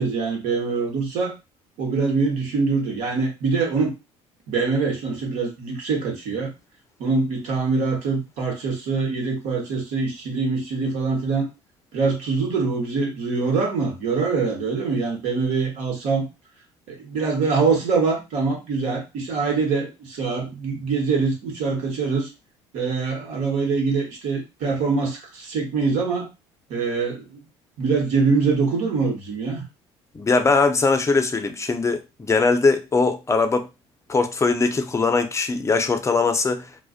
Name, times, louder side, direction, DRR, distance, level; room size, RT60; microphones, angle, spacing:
voice 1, 0.0-1.3 1.8-3.9 4.5-6.5 7.0-11.5 11.9-16.3 16.9-22.3 22.7-26.3 26.7-27.4 27.8-29.6, right 4 dB, 70° right, 1.0 m, -24 dB
voice 2, 30.1-33.7 34.1-36.7, left 4 dB, 20° left, 0.5 m, -21 dB
2.4 x 2.1 x 2.4 m
supercardioid pair, 75°, 13 cm